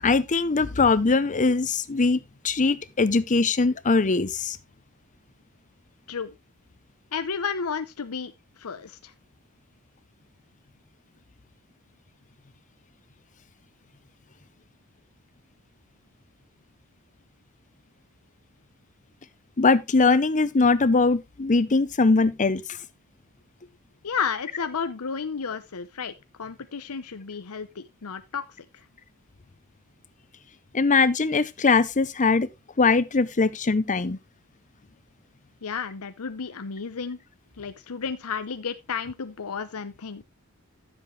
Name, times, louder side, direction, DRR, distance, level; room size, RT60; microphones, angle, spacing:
voice 1, 0.0-2.2 2.4-4.6 19.6-22.8 30.7-32.5 32.8-34.2, left 4 dB, 35° left, 0.7 m, -21 dB
voice 2, 7.1-8.3 8.6-9.1 24.0-26.1 26.4-28.4 28.7-28.8 35.6-37.2 37.6-40.2, left 6 dB, 70° left, 0.7 m, -32 dB
13.0 x 7.3 x 3.2 m
head